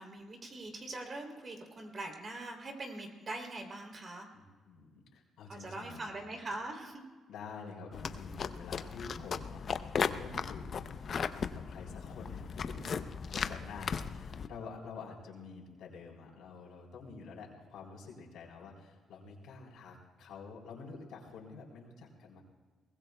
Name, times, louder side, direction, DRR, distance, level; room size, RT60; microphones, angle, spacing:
voice 1, 0.0-4.3 5.5-7.0, right 2 dB, 40° right, 2 dB, 3.1 m, -42 dB
voice 2, 4.3-6.1 7.3-10.8 11.1-11.2 11.5-22.4, left 4 dB, 85° left, -2 dB, 3.7 m, -48 dB
sound 1, 7.9-14.5, left 6 dB, 50° left, 0.6 m, -37 dB
22.5 x 20.0 x 2.3 m, 1.4 s
cardioid pair, 90°, 0 cm